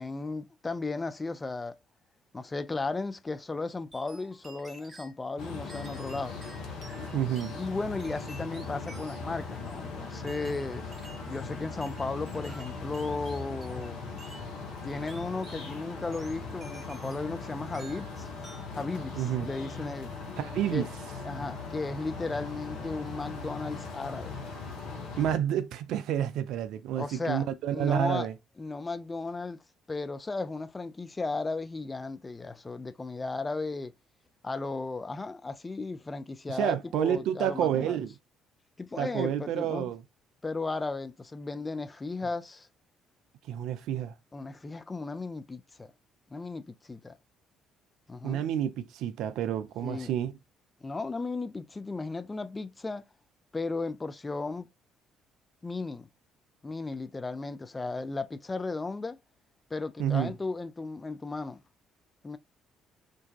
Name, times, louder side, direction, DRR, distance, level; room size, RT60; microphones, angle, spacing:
voice 1, 0.0-1.8 2.3-6.4 7.6-10.9 11.3-14.0 14.8-18.3 18.7-20.1 20.7-20.9 21.2-24.4 27.0-27.5 27.7-28.3 28.6-29.6 29.9-33.9 34.4-38.0 38.8-39.9 40.4-42.7 44.3-45.9 46.3-47.2 48.1-48.4 49.8-50.1 50.8-53.0 53.5-54.7 55.6-56.1 56.6-59.2 59.7-61.6 62.2-62.4, left 3 dB, 25° left, 0.3 m, -35 dB
sound 1, 3.9-5.2 5.7-7.6 8.0-9.4 10.3-11.3 11.8-13.9 14.2-14.5 15.1-15.7 16.1-17.4 17.7-18.1 18.4-18.8, right 2 dB, 25° right, 0.8 m, -51 dB
sound 2, 5.4-25.3, left 4 dB, 65° left, 0.7 m, -39 dB
voice 2, 7.1-7.5 19.2-19.5 20.4-20.9 25.2-28.3 36.5-38.1 39.0-40.0 43.5-44.1 48.2-50.3 60.0-60.3, right 10 dB, 60° right, 0.3 m, -29 dB
2.6 x 2.2 x 2.2 m
figure-of-eight pair, 45°, 0 cm